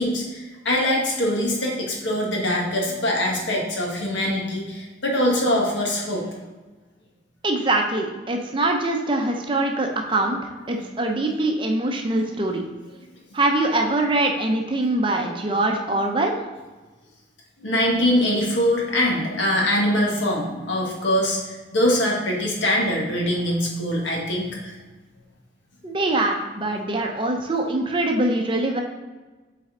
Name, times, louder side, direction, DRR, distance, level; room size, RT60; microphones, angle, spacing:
voice 1, 0.0-6.2 17.6-24.8, left 1 dB, 80° left, -2 dB, 1.6 m, -23 dB
voice 2, 7.4-10.4 10.7-12.6 13.3-16.3 25.8-28.8, right 2 dB, 25° right, 2 dB, 0.6 m, -23 dB
7.7 x 4.2 x 3.7 m, 1.2 s
head